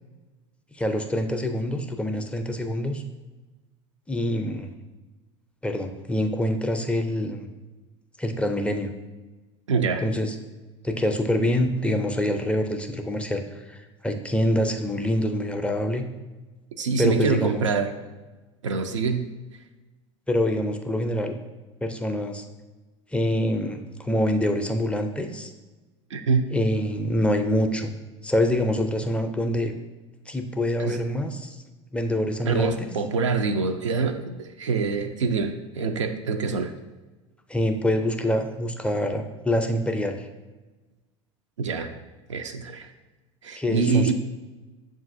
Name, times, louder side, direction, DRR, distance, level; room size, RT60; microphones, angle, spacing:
voice 1, 0.7-3.0 4.1-4.7 5.6-7.5 8.2-8.9 10.0-10.3 10.8-16.0 17.0-17.7 20.3-21.4 21.8-22.4 23.1-25.5 26.5-27.9 28.2-29.7 30.3-31.6 31.9-32.9 37.5-40.3 43.6-44.1, left 1 dB, 5° left, 5 dB, 0.4 m, -25 dB
voice 2, 9.7-10.1 16.8-17.9 18.6-19.3 26.1-26.5 30.8-31.0 32.5-36.7 41.6-41.9 42.3-42.9 43.4-44.1, right 4 dB, 85° right, 6 dB, 0.4 m, -25 dB
7.1 x 2.4 x 2.5 m, 1.2 s
hypercardioid pair, 80°, 15 cm